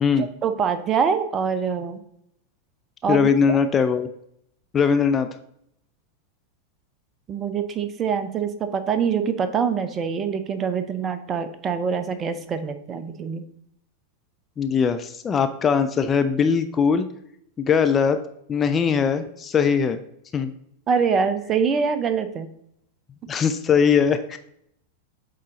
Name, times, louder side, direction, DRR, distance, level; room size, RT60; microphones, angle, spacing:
voice 1, 0.2-2.0 3.0-3.6 7.3-13.4 20.9-22.5, right 6 dB, 25° right, 10 dB, 0.7 m, -24 dB
voice 2, 3.1-4.1 4.7-5.3 14.6-17.1 17.6-18.2 18.5-20.0 20.3-20.5 23.3-24.4, left 6 dB, 20° left, 8 dB, 0.4 m, -20 dB
8.4 x 3.7 x 4.0 m, 0.73 s
figure-of-eight pair, 90°, 0 cm